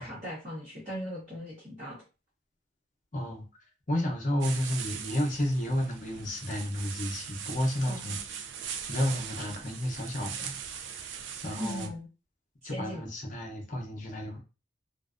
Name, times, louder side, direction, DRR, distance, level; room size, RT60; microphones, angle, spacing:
voice 1, 0.0-2.0 7.8-8.2 11.6-12.1 12.6-13.1, equal, 40° right, -8 dB, 0.9 m, -38 dB
voice 2, 3.1-3.5 3.9-8.2 8.9-10.6 10.9-11.1 11.4-11.9 12.6-14.4, left 1 dB, 40° left, 2 dB, 0.6 m, -31 dB
sound 1, 4.4-11.9, right 7 dB, 70° right, 0.3 m, -40 dB
2.5 x 2.1 x 2.4 m, 0.31 s
head